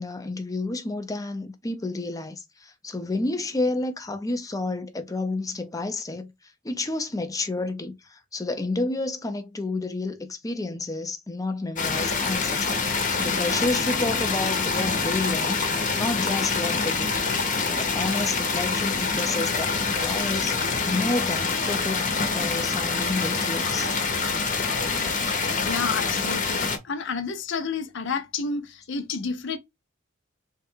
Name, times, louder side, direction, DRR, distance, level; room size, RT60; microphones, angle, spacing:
voice 1, 0.0-6.3 6.6-17.1 17.6-20.6 20.9-24.0, left 2 dB, 15° left, 0.6 m, -30 dB
sound 1, 11.8-26.8, left 4 dB, 40° left, 0.9 m, -26 dB
voice 2, 25.6-29.6, left 4 dB, 65° left, 0.7 m, -30 dB
3.7 x 2.3 x 4.4 m
head